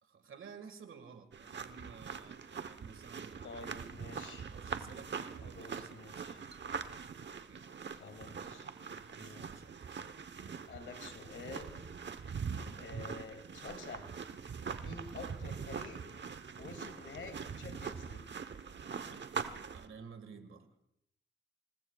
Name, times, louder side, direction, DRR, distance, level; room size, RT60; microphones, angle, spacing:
voice 1, 0.0-3.9 4.4-6.6 7.2-7.7 8.6-9.9 19.7-20.7, right 5 dB, 85° right, 8 dB, 1.8 m, -54 dB
sound 1, 1.3-19.9, right 6 dB, 65° right, 1.0 m, -43 dB
voice 2, 3.4-4.5 5.4-6.4 7.9-8.7 9.1-9.4 10.7-11.8 12.8-14.1 14.8-16.0 16.6-18.3, left 4 dB, 80° left, 6 dB, 2.6 m, -49 dB
28.5 x 19.5 x 2.4 m, 0.76 s
cardioid pair, 65°, 20 cm